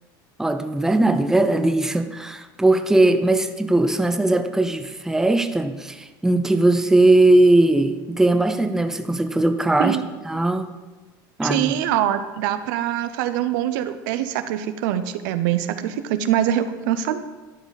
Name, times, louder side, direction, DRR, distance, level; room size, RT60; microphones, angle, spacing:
voice 1, 0.4-10.0 10.3-10.7 11.4-11.7, right 2 dB, 5° right, 8 dB, 0.5 m, -19 dB
voice 2, 11.4-17.2, right 11 dB, 75° right, 10 dB, 0.6 m, -23 dB
12.0 x 5.1 x 4.0 m, 1.2 s
supercardioid pair, 105°, 11 cm